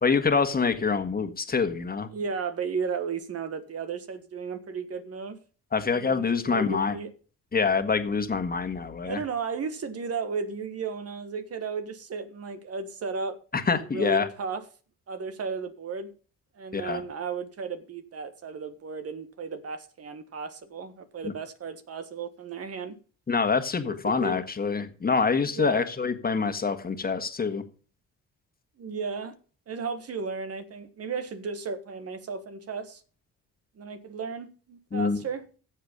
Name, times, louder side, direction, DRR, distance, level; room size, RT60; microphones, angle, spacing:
voice 1, 0.0-2.1 5.7-6.9 7.5-9.2 13.5-14.3 16.7-17.0 21.2-21.3 23.3-27.6 34.9-35.2, left 5 dB, 30° left, 1.6 m, -26 dB
voice 2, 2.1-5.4 5.9-7.1 9.0-13.4 13.7-14.6 15.1-16.1 16.5-23.0 23.8-24.4 25.6-25.8 28.8-29.3 29.7-33.0 33.7-35.4, right 5 dB, 55° right, 1.5 m, -34 dB
13.5 x 7.5 x 5.3 m
cardioid pair, 90°, 30 cm